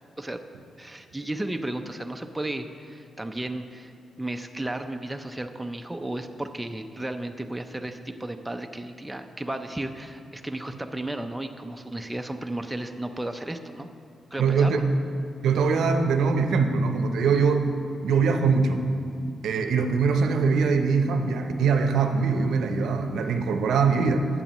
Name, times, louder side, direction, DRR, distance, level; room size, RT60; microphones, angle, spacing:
voice 1, 0.8-13.9 14.3-14.8, right 1 dB, 10° right, 6 dB, 0.4 m, -34 dB
voice 2, 14.4-14.8 15.4-17.7 18.0-18.8 19.4-24.3, right 5 dB, 90° right, 6 dB, 0.6 m, -22 dB
14.0 x 8.3 x 3.0 m, 2.5 s
cardioid pair, 120°, 0 cm